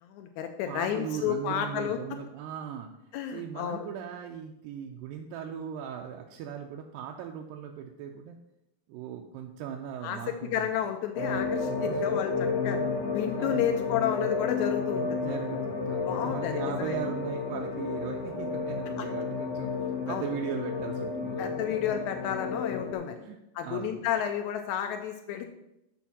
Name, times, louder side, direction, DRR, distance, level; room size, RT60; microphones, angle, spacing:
voice 1, 0.0-2.0 3.1-3.9 10.0-12.8 13.1-15.3 16.1-17.0 19.0-19.1 20.1-20.3 21.4-23.2 23.6-25.5, left 9 dB, 85° left, 6 dB, 1.6 m, -31 dB
voice 2, 0.7-8.4 8.9-10.7 11.9-12.2 12.7-12.9 13.4-13.7 15.1-21.5 23.2-23.4 23.6-24.0, right 8 dB, 85° right, 2 dB, 2.3 m, -39 dB
sound 1, 11.2-23.0, left 4 dB, 65° left, 1.8 m, -31 dB
7.0 x 4.1 x 5.9 m, 0.87 s
omnidirectional pair, 3.9 m